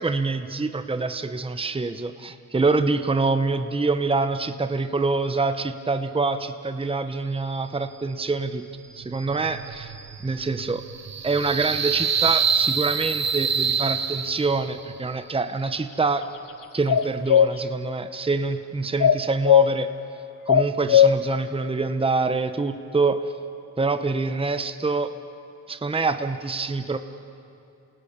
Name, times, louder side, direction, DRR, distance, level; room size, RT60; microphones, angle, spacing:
voice 1, 0.0-8.6 9.0-9.9 10.2-10.8 11.2-16.2 16.7-19.9 20.5-23.3 23.8-25.1 25.7-27.0, right 3 dB, 15° right, 9 dB, 1.0 m, -25 dB
sound 1, 8.8-14.8, right 6 dB, 50° right, 1.4 m, -26 dB
sound 2, 16.9-17.5 19.0-19.7 20.5-21.1, left 9 dB, 65° left, 1.0 m, -16 dB
28.0 x 18.5 x 6.9 m, 2.6 s
cardioid pair, 60°, 35 cm